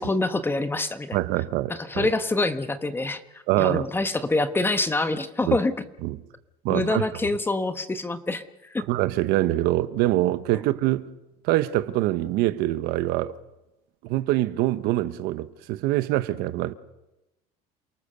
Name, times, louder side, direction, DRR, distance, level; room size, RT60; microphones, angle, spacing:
voice 1, 0.0-1.2 1.7-5.8 6.7-8.4 8.7-8.9 10.5-10.6, left 2 dB, 15° left, 1.2 m, -26 dB
voice 2, 1.1-2.1 3.5-3.8 5.5-5.6 6.0-6.2 6.6-7.0 8.9-11.1 11.4-13.3 14.0-16.7, right 16 dB, 75° right, 1.2 m, -24 dB
28.5 x 19.0 x 6.8 m
cardioid pair, 125°, 17 cm